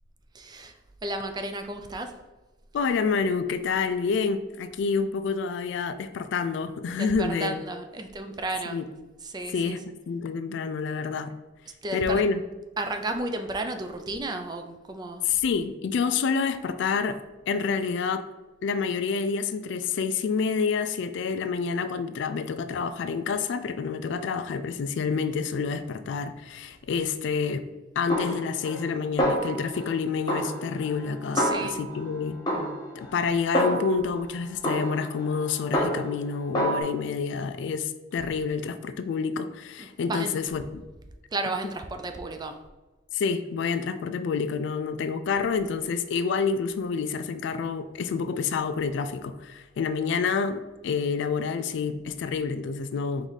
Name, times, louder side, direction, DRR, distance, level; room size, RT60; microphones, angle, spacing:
voice 1, 0.3-2.1 6.8-8.9 9.2-9.9 11.8-12.3 12.8-15.3 31.3-31.8 39.8-40.5 41.3-42.6, right 2 dB, 20° right, 6 dB, 0.4 m, -33 dB
voice 2, 2.7-7.6 8.7-8.8 9.5-9.8 10.1-11.3 11.9-12.4 15.3-17.2 17.5-18.2 18.6-27.7 28.0-32.4 33.0-40.8 43.1-53.3, left 5 dB, 65° left, 11 dB, 0.3 m, -28 dB
Snare drum, 28.1-28.9 29.2-29.9 30.3-32.1 32.5-34.1 34.6-36.2 36.5-36.8, equal, 20° left, 1.0 m, -28 dB
4.7 x 2.6 x 3.9 m, 1.2 s
head